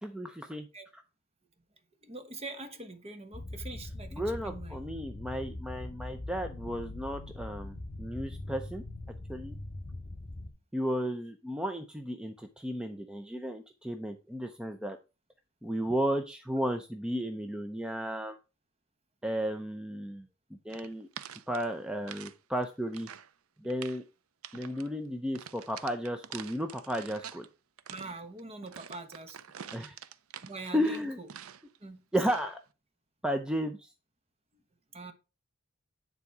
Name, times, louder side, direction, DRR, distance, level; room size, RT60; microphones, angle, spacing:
voice 1, 0.0-0.7 4.1-8.8 9.3-9.6 10.7-15.0 15.6-18.4 19.2-20.3 20.7-21.1 21.5-23.1 23.6-24.0 24.5-27.5 29.7-30.0 30.7-31.2 32.1-32.6 33.2-33.9, equal, 5° right, 0.6 m, -33 dB
voice 2, 2.0-4.8 27.9-29.4 30.4-31.3 31.8-32.0 34.9-35.1, right 2 dB, 30° right, 1.2 m, -43 dB
sound 1, 3.3-10.5, left 2 dB, 20° left, 2.1 m, -42 dB
sound 2, 20.7-22.4 22.6-23.3 23.6-24.0 24.4-24.9 25.3-27.5 27.8-31.8 32.1-32.6, right 8 dB, 80° right, 0.5 m, -47 dB
9.7 x 4.0 x 4.7 m
head